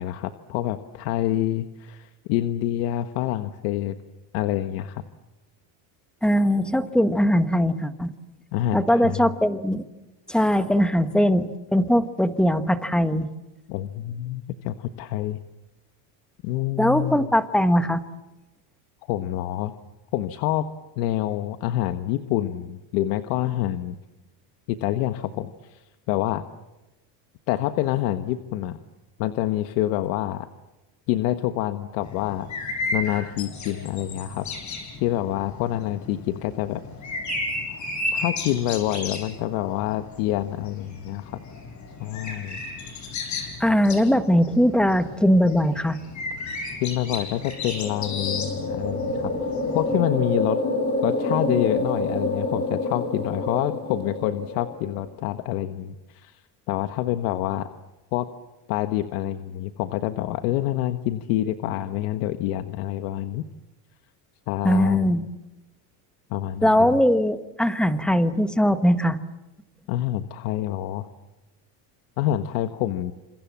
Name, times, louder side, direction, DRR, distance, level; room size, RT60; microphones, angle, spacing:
voice 1, 0.0-4.0 4.3-5.0 8.5-9.3 13.7-15.4 16.4-17.3 19.1-19.7 20.1-20.7 21.0-24.0 24.7-26.4 27.5-28.8 29.2-30.5 31.1-32.5 32.9-34.5 34.7-36.8 38.1-41.4 42.0-42.6 46.8-49.3 49.7-50.6 51.0-56.4 56.7-57.7 58.1-58.3 58.7-63.4 64.5-65.1 66.3-67.0 69.9-71.1 72.2-73.1, left 13 dB, 75° left, 8 dB, 1.5 m, -27 dB
voice 2, 6.2-8.1 8.7-9.8 10.3-13.3 16.8-18.0 43.6-46.0 64.6-65.3 66.6-69.2, equal, ahead, 9 dB, 1.3 m, -20 dB
sound 1, 32.0-50.0, left 3 dB, 35° left, 6.4 m, -34 dB
sound 2, 47.4-55.0, left 2 dB, 20° left, 6.4 m, -28 dB
29.0 x 27.0 x 7.5 m, 1.0 s
cardioid pair, 140°, 47 cm